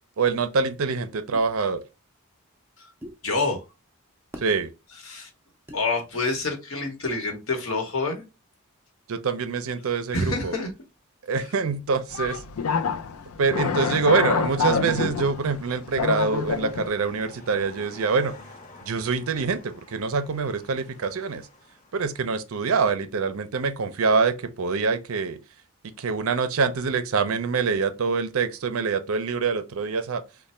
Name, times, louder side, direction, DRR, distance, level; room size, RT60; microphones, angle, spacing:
voice 1, 0.2-1.8 4.4-4.7 9.1-10.6 11.3-12.4 13.4-18.3 18.8-21.5 21.9-25.4 25.8-30.2, right 5 dB, 70° right, 0.5 m, -25 dB
sound 1, 3.0-3.2 4.3-4.5 5.7-5.8 7.1-7.3, equal, 10° right, 0.5 m, -40 dB
voice 2, 3.2-3.6 5.0-5.3 5.7-8.2 10.1-10.7 11.4-11.5, left 3 dB, 65° left, 1.0 m, -27 dB
sound 2, 12.1-16.9, left 6 dB, 90° left, 0.4 m, -27 dB
sound 3, 15.8-22.5, left 2 dB, 40° left, 0.9 m, -49 dB
3.2 x 2.2 x 4.2 m
head